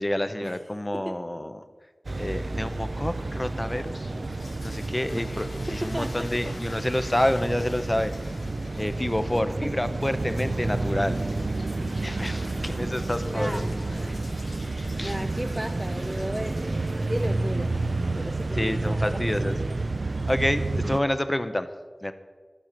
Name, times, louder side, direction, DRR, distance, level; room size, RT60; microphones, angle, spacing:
voice 1, 0.0-1.6 2.1-4.1 4.6-8.1 8.8-11.2 12.0-13.6 15.0-15.3 18.1-18.2 18.5-19.5 20.3-21.7 22.0-22.1, left 1 dB, 20° left, 10 dB, 0.8 m, -28 dB
sound 1, 2.0-21.0, right 2 dB, 65° right, 0.5 m, -30 dB
sound 2, 3.8-19.7, left 2 dB, 85° left, 1.6 m, -47 dB
voice 2, 5.7-6.5 8.8-8.9 13.2-14.1 14.6-17.7 18.1-19.2 19.5-19.8, equal, 10° right, 5 dB, 0.5 m, -35 dB
12.5 x 7.4 x 6.8 m, 1.4 s
wide cardioid pair, 65°, 0 cm